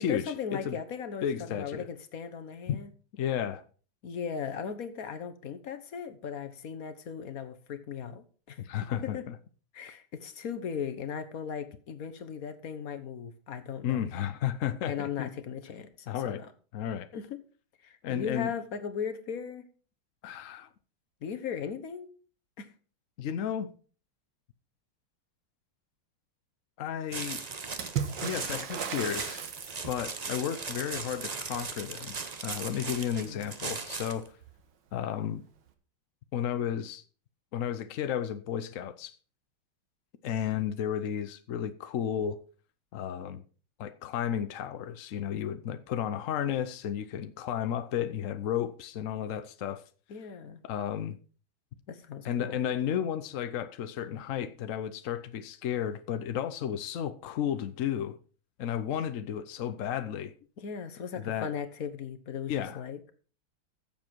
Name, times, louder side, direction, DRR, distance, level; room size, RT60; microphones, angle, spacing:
voice 1, 0.0-2.9 4.0-8.6 8.9-9.3 9.7-14.0 14.9-16.5 17.1-17.4 17.8-19.7 21.2-22.1 22.6-22.7 33.2-33.6 50.1-50.6 51.9-52.6 60.6-63.1, left 7 dB, 50° left, 1.3 m, -37 dB
voice 2, 1.2-1.9 3.1-3.6 8.6-9.4 13.8-15.3 16.1-16.4 16.7-17.1 18.0-18.5 20.2-20.7 23.2-23.7 26.8-27.4 28.2-29.4 29.9-32.2 32.4-34.3 34.9-35.4 36.3-37.0 37.5-39.1 40.2-42.4 42.9-43.4 43.8-49.8 50.6-51.2 52.2-58.2 58.6-60.3 61.2-61.5 62.5-62.8, left 9 dB, 75° left, 0.7 m, -33 dB
sound 1, 27.1-34.3, right 4 dB, 85° right, 0.3 m, -38 dB
Water / Splash splatter, 27.8-30.2 33.5-33.6 33.8-34.6 35.7-35.8, right 8 dB, 60° right, 1.8 m, -36 dB
14.5 x 7.4 x 4.5 m
omnidirectional pair, 2.3 m